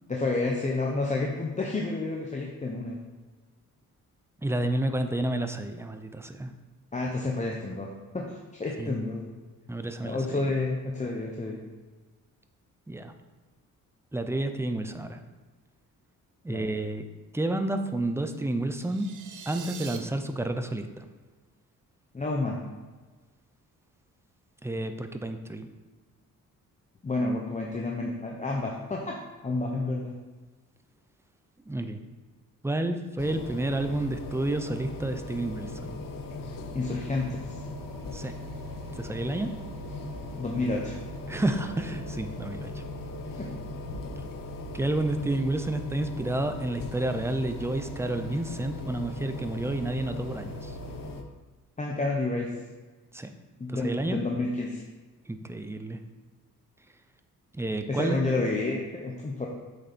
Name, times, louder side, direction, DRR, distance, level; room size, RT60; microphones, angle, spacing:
voice 1, 0.1-3.0 6.9-7.9 8.1-9.4 10.0-11.6 16.5-16.7 22.1-22.6 27.0-29.2 29.4-30.1 36.7-37.6 40.4-41.0 43.4-43.5 51.8-52.5 53.6-54.8 57.9-59.5, left 2 dB, 20° left, -1 dB, 0.9 m, -30 dB
voice 2, 4.4-6.5 8.8-9.0 9.7-10.4 12.9-13.1 14.1-15.2 16.4-17.0 17.3-19.1 19.5-21.1 24.6-25.7 31.7-32.0 32.6-36.0 38.1-38.4 39.0-39.5 41.3-42.8 44.7-50.8 53.1-53.3 53.7-54.2 55.3-56.0 57.5-58.2, right 1 dB, 10° right, 7 dB, 0.6 m, -30 dB
sound 1, 18.8-20.0, right 7 dB, 65° right, 1.0 m, -42 dB
sound 2, 33.2-51.2, left 2 dB, 75° left, 1.0 m, -39 dB
7.9 x 6.7 x 4.3 m, 1.3 s
cardioid pair, 110°, 33 cm